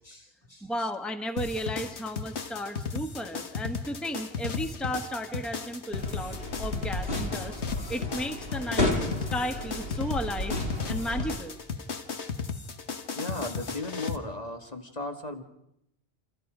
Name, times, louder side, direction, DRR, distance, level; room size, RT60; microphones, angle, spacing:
voice 1, 0.0-0.7 13.2-15.4, left 2 dB, 35° left, 4 dB, 1.9 m, -36 dB
voice 2, 0.6-7.6 7.9-8.9 9.3-10.6 10.9-11.6, equal, ahead, 5 dB, 1.3 m, -34 dB
sound 1, 1.4-14.2, left 5 dB, 80° left, 1.6 m, -35 dB
sound 2, 5.9-11.3, left 1 dB, 60° left, 3.3 m, -32 dB
28.0 x 27.0 x 5.1 m, 0.79 s
omnidirectional pair, 1.1 m